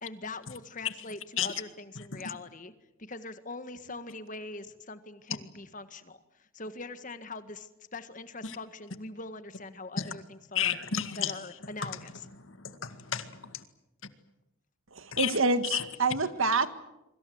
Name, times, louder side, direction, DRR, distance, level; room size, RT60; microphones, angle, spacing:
voice 1, 0.0-2.7 3.0-10.8 11.2-12.3, left 2 dB, 35° left, 1.7 m, -42 dB
voice 2, 10.6-11.3 12.5-13.6 15.1-15.3 15.7-15.8, left 9 dB, 70° left, 2.0 m, -31 dB
voice 3, 14.9-16.7, right 3 dB, 70° right, 1.7 m, -27 dB
26.5 x 24.5 x 7.9 m
head